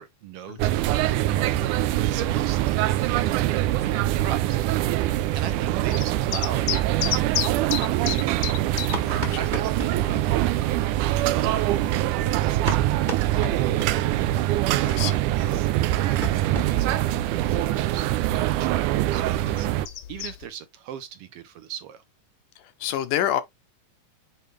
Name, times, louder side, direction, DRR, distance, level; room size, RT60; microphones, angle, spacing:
voice 1, 0.0-1.5 2.0-4.6 5.3-8.4 9.4-11.7 12.2-14.5 15.3-18.1 18.3-19.7 20.1-22.0, right 9 dB, 70° right, 1.5 m, -39 dB
Airport Café, 0.6-19.9, right 15 dB, 85° right, 2.1 m, -24 dB
sound 1, 1.2-20.5, left 10 dB, 65° left, 1.9 m, -37 dB
sound 2, 7.9-10.0 11.1-14.2 14.5-14.6 14.9-15.0 15.3-17.3 17.6-17.7 18.0-18.1 18.4-18.5 18.8-19.6, equal, 25° right, 1.0 m, -37 dB
voice 2, 9.0-9.4 14.8-15.2 22.8-23.4, left 11 dB, 80° left, 2.5 m, -27 dB
8.6 x 3.4 x 3.3 m
omnidirectional pair, 3.5 m